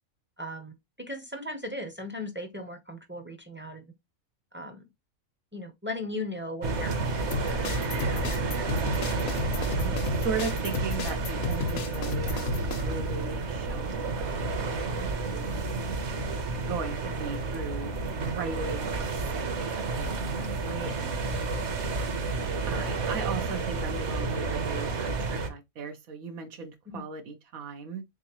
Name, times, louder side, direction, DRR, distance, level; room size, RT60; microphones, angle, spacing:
voice 1, 0.4-3.9 4.5-4.9 5.5-7.6 7.8-8.2 20.8-21.1 26.9-27.0, left 1 dB, 15° right, 0.5 m, -38 dB
sound 1, 6.6-25.5, right 3 dB, 60° right, 1.1 m, -30 dB
sound 2, 7.3-12.8, left 4 dB, 85° left, 1.2 m, -33 dB
voice 2, 9.7-12.5 12.8-15.5 16.7-21.2 22.6-28.0, right 5 dB, 85° right, 1.2 m, -38 dB
3.8 x 3.6 x 2.9 m
omnidirectional pair, 1.4 m